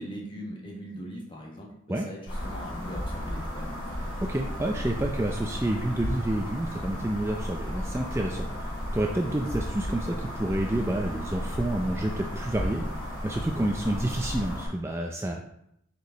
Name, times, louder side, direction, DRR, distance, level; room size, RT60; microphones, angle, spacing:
voice 1, 0.0-4.1, equal, 25° left, -2 dB, 1.4 m, -40 dB
sound 1, 2.3-14.7, equal, 65° left, 2.6 m, -34 dB
voice 2, 4.2-15.3, right 1 dB, 10° right, 0 dB, 0.4 m, -29 dB
6.8 x 4.9 x 4.0 m, 0.78 s
head